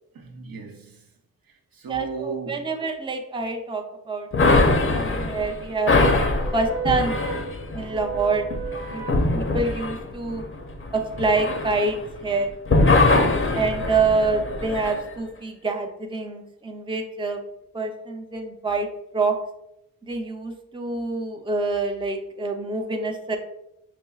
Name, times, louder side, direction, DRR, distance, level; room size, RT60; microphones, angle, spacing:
voice 1, 0.1-1.1 1.7-2.7 6.2-9.1, right 4 dB, 80° right, 0.7 m, -35 dB
voice 2, 1.9-4.6 4.9-5.9 6.5-7.1 7.7-8.5 8.8-9.1 9.3-10.4 10.9-12.0 12.2-12.5 13.5-17.4 17.7-18.9 19.1-19.4 20.0-23.4, right 3 dB, 15° right, 0.5 m, -26 dB
sound 1, 4.3-12.3 12.7-15.0, left 2 dB, 35° left, 0.6 m, -22 dB
5.8 x 3.0 x 2.3 m
wide cardioid pair, 90°, 34 cm